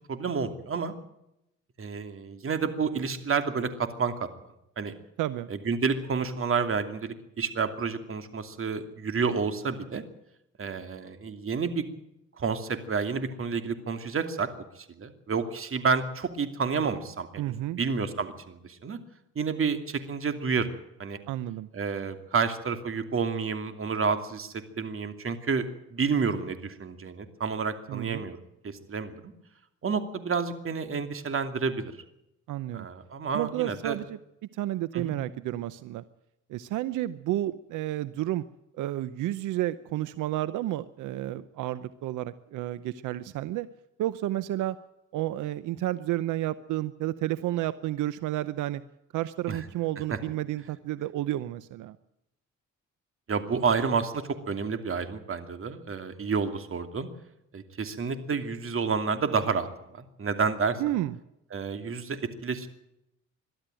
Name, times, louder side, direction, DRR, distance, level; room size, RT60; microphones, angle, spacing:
voice 1, 0.1-0.9 1.8-4.1 4.8-4.9 5.5-10.0 10.6-11.8 12.4-14.5 14.8-19.0 19.3-20.7 21.0-21.2 21.7-25.6 25.9-28.4 28.6-29.3 29.8-31.9 32.7-34.0 34.9-35.1 49.5-49.6 50.1-50.2 53.3-57.1 57.5-60.9 61.5-62.7, right 5 dB, 45° right, 8 dB, 2.7 m, -30 dB
voice 2, 5.2-5.5 17.4-17.8 21.3-21.7 27.9-28.3 32.5-32.9 33.3-34.2 34.5-36.0 36.5-38.4 38.8-43.7 44.0-44.8 45.1-48.8 49.1-52.0 60.8-61.2, right 14 dB, 90° right, 15 dB, 0.8 m, -31 dB
22.5 x 13.0 x 9.1 m, 0.84 s
cardioid pair, 90°, 30 cm